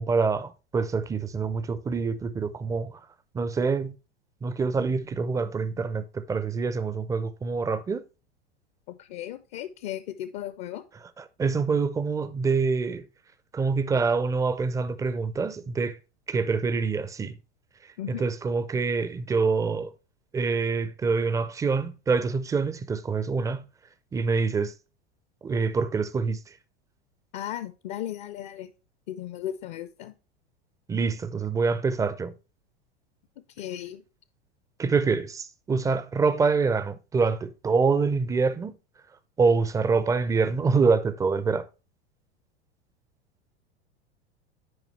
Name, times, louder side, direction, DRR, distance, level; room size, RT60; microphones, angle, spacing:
voice 1, 0.0-3.0 3.3-3.9 4.4-8.0 11.4-13.0 13.5-16.0 16.3-17.4 18.2-19.9 20.3-23.6 24.1-24.7 25.4-26.4 30.9-32.3 34.8-38.8 39.4-41.7, right 4 dB, 10° right, 0.4 m, -25 dB
voice 2, 8.9-10.8 18.0-18.3 27.3-28.7 29.1-30.1 33.4-34.0, left 11 dB, 45° left, 0.6 m, -36 dB
9.5 x 5.1 x 3.1 m
figure-of-eight pair, 85°, 32 cm